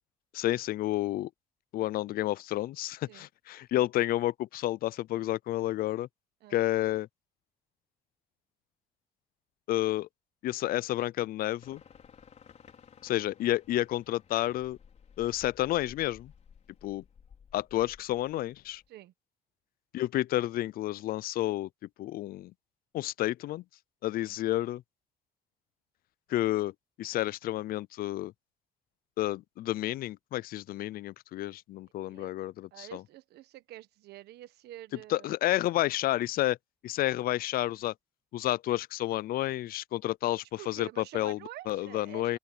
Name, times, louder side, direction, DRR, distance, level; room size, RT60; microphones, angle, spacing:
voice 1, 0.3-1.3 1.7-6.1 6.5-7.1 9.7-10.1 10.4-11.8 13.0-14.8 15.2-16.3 16.8-17.0 17.5-18.8 19.9-21.7 22.0-22.5 22.9-23.6 24.0-24.8 26.3-28.3 29.2-33.0 35.1-36.6 36.8-37.9 38.3-41.4 41.7-42.4, left 15 dB, 60° left, 0.5 m, -30 dB
sound 1, 11.6-18.9, left 7 dB, 40° left, 4.8 m, -56 dB
voice 2, 32.7-35.3 40.6-42.4, right 14 dB, 75° right, 1.4 m, -47 dB
open air
cardioid pair, 110°, 17 cm